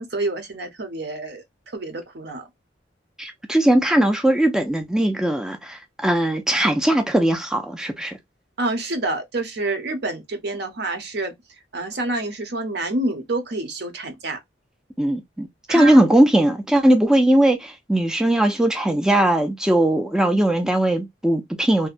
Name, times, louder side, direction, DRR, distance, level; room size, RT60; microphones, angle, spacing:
voice 1, 0.0-1.4 1.7-2.5 8.6-11.3 11.7-14.4 15.7-16.0, right 2 dB, 65° right, 0.7 m, -27 dB
voice 2, 3.2-8.2 15.0-21.9, right 1 dB, 5° right, 0.3 m, -19 dB
2.6 x 2.1 x 2.4 m
head